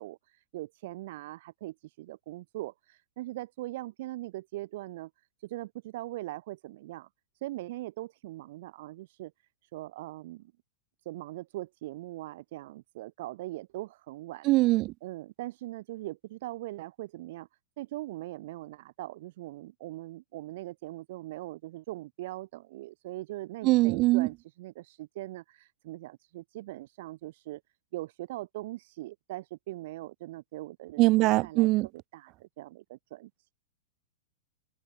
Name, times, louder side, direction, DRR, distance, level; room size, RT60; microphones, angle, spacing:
voice 1, 0.0-5.1 5.4-7.1 7.3-9.3 9.6-10.5 11.0-14.5 15.0-17.5 17.8-27.6 27.9-31.7 31.9-33.5, right 17 dB, 60° right, 7.2 m, -41 dB
voice 2, 14.5-14.9 23.6-24.3 31.0-31.9, right 20 dB, 40° right, 1.1 m, -22 dB
hypercardioid pair, 105°, 0 cm